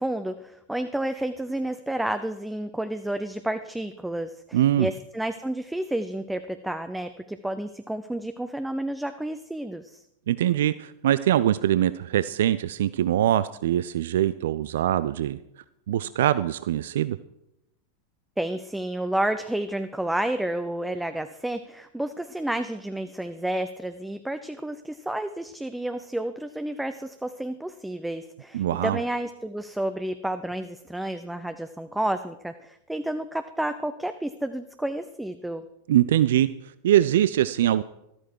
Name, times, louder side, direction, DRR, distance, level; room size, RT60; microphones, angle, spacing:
voice 1, 0.0-10.0 18.4-35.6, right 1 dB, 5° right, 10 dB, 0.6 m, -30 dB
voice 2, 4.5-4.9 10.3-15.4 15.9-17.2 28.5-29.0 35.9-36.5 36.8-37.8, right 12 dB, 60° right, 16 dB, 0.4 m, -22 dB
13.0 x 13.0 x 4.6 m, 0.84 s
figure-of-eight pair, 90°, 0 cm